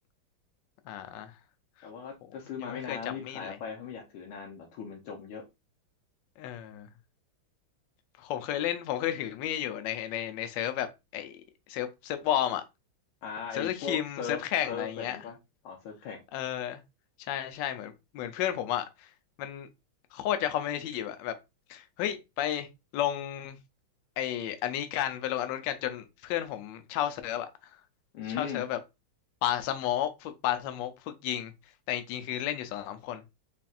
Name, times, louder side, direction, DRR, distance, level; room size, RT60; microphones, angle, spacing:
voice 1, 0.9-1.3 2.6-3.6 6.4-6.9 8.2-10.9 11.1-11.4 11.7-12.6 13.5-15.2 16.3-16.8 17.3-19.1 19.4-19.7 20.1-21.3 21.7-22.7 22.9-23.6 24.2-27.5 28.4-28.8 29.4-31.5 31.9-33.2, left 11 dB, 70° left, 1.2 m, -32 dB
voice 2, 1.8-5.4 13.2-14.4 14.7-15.4 15.6-16.2 28.1-28.6, left 6 dB, 90° left, 1.7 m, -38 dB
4.2 x 3.3 x 2.3 m
omnidirectional pair, 2.3 m